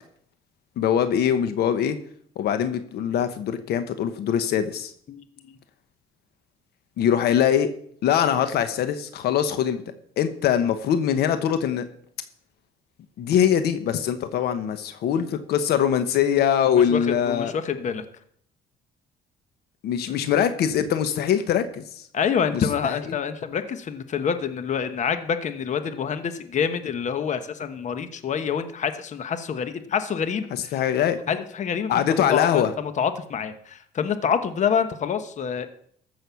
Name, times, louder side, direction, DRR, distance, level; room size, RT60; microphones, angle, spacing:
voice 1, 0.8-2.0 2.4-4.9 7.0-7.7 8.0-9.8 10.2-11.8 13.2-17.5 19.8-22.0 22.5-23.0 30.7-31.2 31.9-32.7, left 9 dB, 70° left, 10 dB, 1.2 m, -22 dB
voice 2, 5.1-5.6 16.7-18.0 20.1-20.3 22.1-30.8 31.3-35.7, left 7 dB, 45° left, 10 dB, 1.2 m, -27 dB
14.5 x 6.4 x 7.1 m, 0.64 s
cardioid pair, 110°, 17 cm